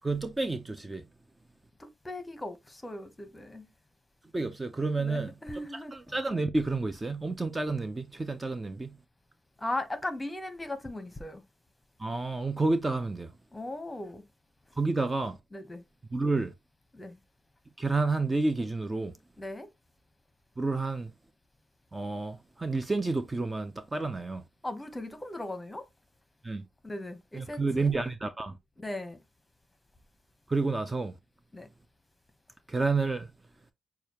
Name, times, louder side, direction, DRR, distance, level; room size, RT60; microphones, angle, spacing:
voice 1, 0.0-1.0 4.3-5.3 5.7-8.9 12.0-13.3 14.8-15.4 16.1-16.5 17.8-19.1 20.6-21.1 21.9-24.4 26.4-26.7 27.3-28.5 30.5-31.2 32.7-33.3, right 3 dB, 20° right, 0.5 m, -30 dB
voice 2, 1.8-3.7 4.9-5.9 9.6-11.4 13.5-14.2 15.5-15.8 16.9-17.2 19.4-19.7 24.6-25.8 26.8-27.9 28.8-29.2 31.5-31.7, left 1 dB, 15° left, 1.0 m, -38 dB
6.6 x 2.3 x 2.9 m
cardioid pair, 90°, 0 cm